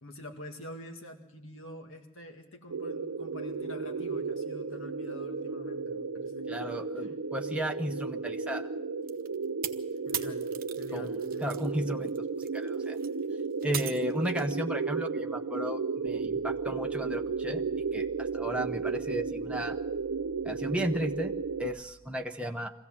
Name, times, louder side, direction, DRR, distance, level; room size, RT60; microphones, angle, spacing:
voice 1, 0.0-6.5 10.1-10.5 10.8-11.5, left 1 dB, 65° left, 4 dB, 1.9 m, -46 dB
sound 1, 2.7-21.7, right 4 dB, 85° right, 0.7 m, -34 dB
voice 2, 6.5-8.7 10.9-12.3 12.5-13.0 13.6-17.6 17.9-19.8 20.4-21.3 21.6-22.7, equal, 5° right, 3 dB, 0.7 m, -34 dB
sound 2, 9.1-11.7 12.0-14.6, right 10 dB, 45° right, 0.9 m, -39 dB
sound 3, 16.1-21.8, right 1 dB, 30° left, 1.6 m, -55 dB
23.0 x 16.0 x 7.3 m, 0.89 s
head